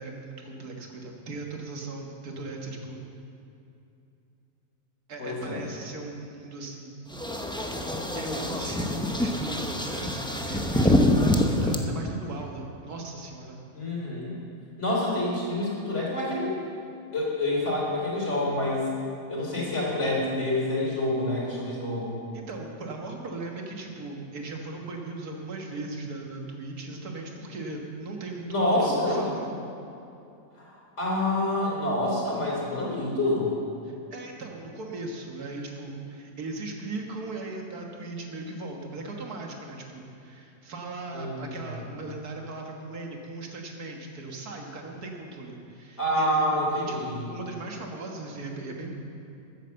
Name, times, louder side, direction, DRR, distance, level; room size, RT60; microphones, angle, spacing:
voice 1, 0.0-3.0 5.1-7.0 8.1-13.6 22.3-29.5 33.9-49.0, right 2 dB, 85° right, 1 dB, 2.1 m, -38 dB
voice 2, 5.2-5.6 13.7-14.3 14.8-16.6 17.1-18.9 19.3-22.2 28.5-29.3 30.7-33.5 41.1-41.7 46.0-47.2, left 1 dB, 50° left, -4 dB, 3.7 m, -27 dB
sound 1, 7.1-11.8, left 1 dB, 5° left, 0.4 m, -25 dB
14.0 x 9.1 x 7.0 m, 2.7 s
omnidirectional pair, 1.6 m